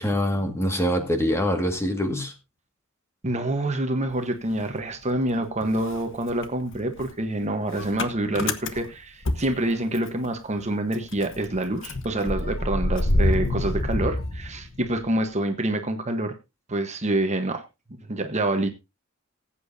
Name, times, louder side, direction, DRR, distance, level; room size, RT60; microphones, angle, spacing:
voice 1, 0.0-2.3, equal, 15° left, 1.9 m, -24 dB
voice 2, 3.2-16.3 16.7-17.6 18.1-18.7, right 1 dB, 35° right, 1.2 m, -27 dB
Motor vehicle (road) / Engine starting, 4.1-5.3 5.6-10.3 10.6-10.7 10.9-15.0, left 1 dB, 65° left, 1.2 m, -28 dB
19.5 x 8.6 x 2.7 m
head